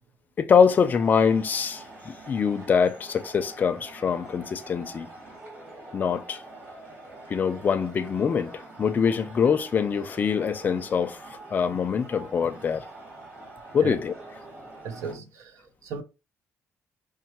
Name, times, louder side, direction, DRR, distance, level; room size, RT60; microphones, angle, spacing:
voice 1, 0.4-5.1 5.9-6.4 7.3-8.5 8.8-11.2 11.5-12.8 13.7-14.1, left 6 dB, 35° left, 0.4 m, -24 dB
sound 1, 0.7-15.2, right 2 dB, 35° right, 1.6 m, -45 dB
voice 2, 14.8-16.0, right 5 dB, 90° right, 0.6 m, -36 dB
5.2 x 2.1 x 2.9 m
cardioid pair, 150°, 5 cm